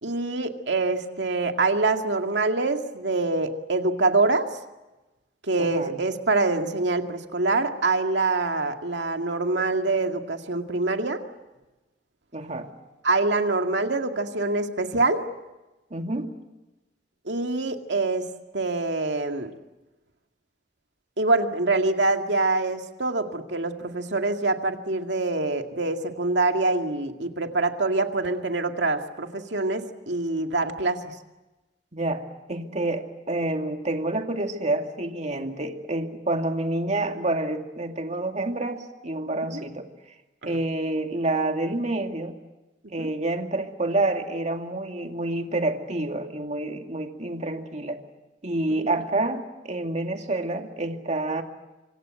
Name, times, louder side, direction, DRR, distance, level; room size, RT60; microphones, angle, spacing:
voice 1, 0.0-4.5 5.4-11.2 13.0-15.2 17.3-18.3 18.5-19.5 21.2-31.0 39.5-39.6 40.4-40.6 43.0-43.1 48.8-48.9, right 3 dB, 80° right, 5 dB, 2.2 m, -25 dB
voice 2, 5.6-6.0 12.3-12.7 15.9-16.3 31.9-32.2 32.5-39.9 40.4-42.4 42.9-48.0 48.4-51.4, right 2 dB, 40° right, 4 dB, 2.4 m, -28 dB
26.0 x 25.5 x 7.8 m, 1.1 s
head